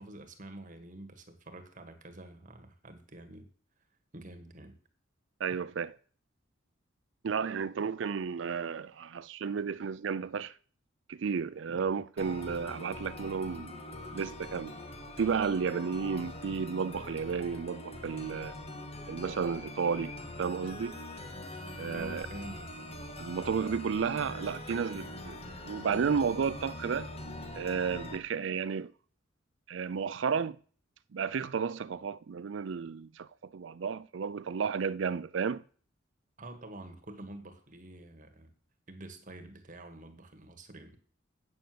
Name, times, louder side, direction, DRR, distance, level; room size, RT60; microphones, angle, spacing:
voice 1, 0.0-3.5 4.1-4.8 11.7-11.9 21.9-22.9 36.4-38.5 38.9-41.0, right 2 dB, 40° right, 1.6 m, -47 dB
voice 2, 5.4-6.0 7.2-10.5 11.1-13.8 14.1-14.7 15.2-18.5 19.1-20.1 20.4-21.0 21.8-22.3 23.2-25.4 25.6-27.1 27.5-28.9 29.7-30.6 31.1-35.6, right 6 dB, 65° right, 0.4 m, -32 dB
sound 1, 12.2-28.2, left 1 dB, 30° left, 1.4 m, -43 dB
8.6 x 6.5 x 7.7 m
head